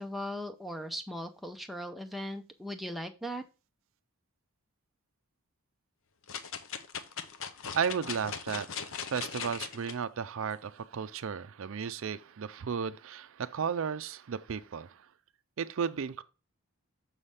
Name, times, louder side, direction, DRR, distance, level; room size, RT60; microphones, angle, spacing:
voice 1, 0.0-3.4, equal, ahead, 0.5 m, -38 dB
sound 1, 6.3-9.9 10.5-10.6, left 7 dB, 60° left, 0.7 m, -39 dB
voice 2, 7.7-8.7 9.1-15.0 15.6-16.2, right 6 dB, 60° right, 0.4 m, -34 dB
6.3 x 5.7 x 3.3 m
head